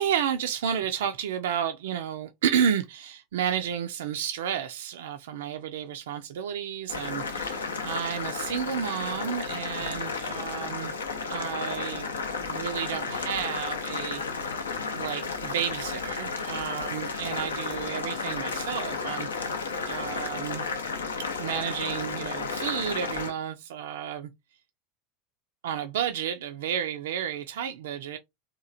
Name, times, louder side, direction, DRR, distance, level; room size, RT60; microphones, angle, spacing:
voice 1, 0.0-10.9 11.3-12.1 12.4-14.2 14.9-19.6 19.9-20.7 21.2-24.3 25.6-28.2, right 8 dB, 70° right, 0.3 m, -31 dB
Boiling, 6.9-23.3, left 4 dB, 80° left, 0.5 m, -33 dB
2.9 x 2.3 x 2.5 m
figure-of-eight pair, 80°, 0 cm